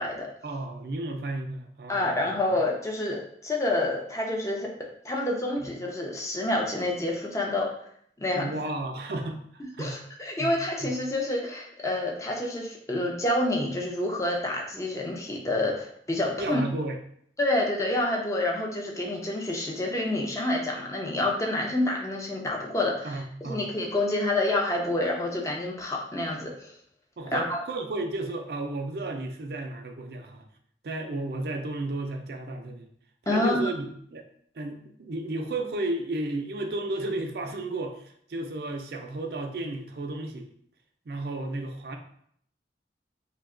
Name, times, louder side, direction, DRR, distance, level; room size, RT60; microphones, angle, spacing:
voice 1, 0.4-2.4 5.6-5.7 8.3-10.0 10.4-10.5 10.8-10.9 16.4-17.0 23.0-23.6 27.2-30.4 30.8-32.9 33.3-34.2 34.6-40.5 41.1-42.0, right 2 dB, 60° right, 3 dB, 0.4 m, -33 dB
voice 2, 1.9-4.7 5.0-7.7 8.2-8.4 9.8-16.6 17.4-26.7 27.3-27.6 33.3-33.7, left 1 dB, 20° left, -1 dB, 0.5 m, -28 dB
2.7 x 2.2 x 3.6 m, 0.66 s
head